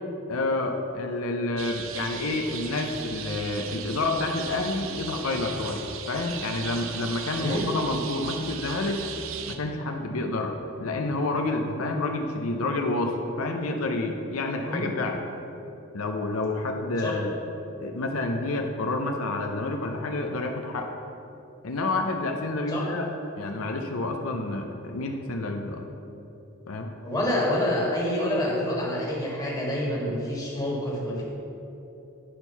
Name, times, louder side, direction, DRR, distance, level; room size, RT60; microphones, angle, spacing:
voice 1, 0.3-9.0 9.5-15.2 15.9-17.3 17.8-20.9 21.6-23.1 23.4-25.8 26.7-26.9 30.0-30.1, left 2 dB, 85° left, 3 dB, 0.7 m, -29 dB
sound 1, 1.6-9.6, right 8 dB, 70° right, 0.5 m, -37 dB
voice 2, 7.3-7.7 14.7-14.9 17.0-17.1 22.7-22.9 27.0-31.3, left 1 dB, 15° left, -5 dB, 1.7 m, -27 dB
10.0 x 4.5 x 5.5 m, 3.0 s
head